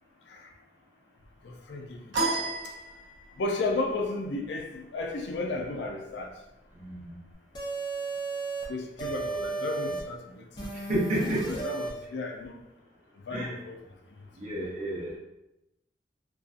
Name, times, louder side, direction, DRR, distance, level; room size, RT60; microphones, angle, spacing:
voice 1, 1.7-2.0 2.4-2.5 3.4-6.3 8.7-10.4 11.5-12.6 13.3-13.8 14.5-14.7, left 2 dB, 80° left, 3 dB, 0.4 m, -33 dB
sound 1, 2.1-3.5, right 3 dB, 90° right, 0.6 m, -31 dB
voice 2, 6.8-7.1 9.9-10.0 10.9-11.6 13.3-13.5 14.4-15.2, right 1 dB, 45° right, -5 dB, 0.7 m, -30 dB
sound 2, 7.5-8.7 9.0-10.0 10.6-11.9, right 3 dB, 25° left, 0.5 m, -34 dB
2.5 x 2.3 x 2.4 m, 0.90 s
head